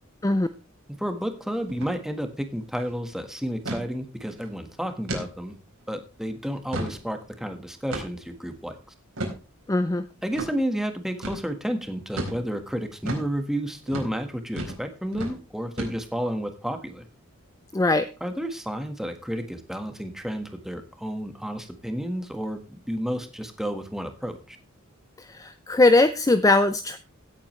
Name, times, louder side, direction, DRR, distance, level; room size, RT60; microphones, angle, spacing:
voice 1, 1.0-5.6 5.9-8.7 10.2-17.0 18.2-24.6, equal, ahead, 6 dB, 1.6 m, -31 dB
sound 1, 1.7-1.9 2.2-2.3 2.7-3.0 3.7-3.9 4.3-4.5 5.1-5.3 5.8-5.9 6.4-7.0 7.9-8.3 9.2-9.4 10.4-10.5 11.2-11.4 12.2-12.4 13.1-13.3 13.9-14.1 14.6-14.8 15.1-15.4 15.8-16.2, right 1 dB, 80° right, 4.3 m, -32 dB
voice 2, 9.7-10.1 17.7-18.1 25.2-27.0, left 2 dB, 15° left, 11 dB, 0.5 m, -20 dB
16.5 x 8.5 x 3.2 m, 0.32 s
head